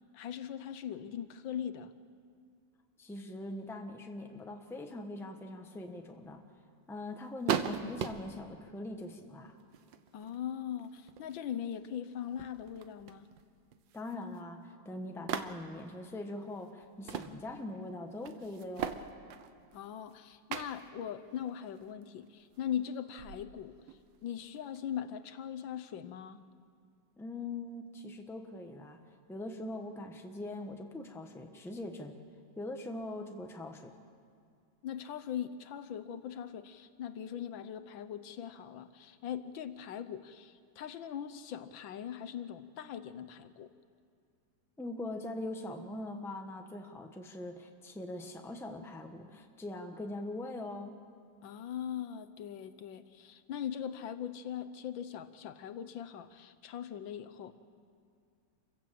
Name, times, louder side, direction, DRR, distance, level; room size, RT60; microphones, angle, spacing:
voice 1, 0.1-1.9 10.1-13.3 19.7-23.7 24.2-26.4 34.8-43.7 51.4-57.5, left 9 dB, 75° left, 11 dB, 1.5 m, -40 dB
voice 2, 3.0-6.4 6.9-9.6 13.9-19.0 27.2-32.2 32.5-33.9 44.8-51.0, left 2 dB, ahead, 4 dB, 1.0 m, -42 dB
sound 1, 6.2-6.3 7.4-8.5 9.6-10.4 10.8-11.4 11.8-11.9 12.3-13.4 13.7-14.4 15.3-15.9 16.8-17.4 17.7-17.8 18.2-20.1 20.5-20.9 21.4-22.0 22.5-22.6 23.2-24.9, right 8 dB, 70° right, 1.6 m, -39 dB
27.5 x 15.5 x 7.6 m, 2.3 s
omnidirectional pair, 2.2 m